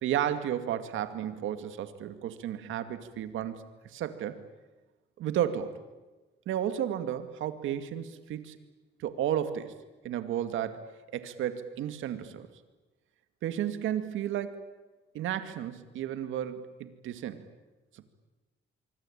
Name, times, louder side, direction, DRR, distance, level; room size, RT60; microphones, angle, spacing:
voice 1, 0.0-4.4 5.2-5.7 6.5-8.6 9.0-9.7 10.0-10.9 11.1-12.5 13.4-14.6 15.1-17.4 17.9-18.1, right 10 dB, 85° right, 10 dB, 2.3 m, -33 dB
26.0 x 24.0 x 9.0 m, 1.2 s
cardioid pair, 90°, 20 cm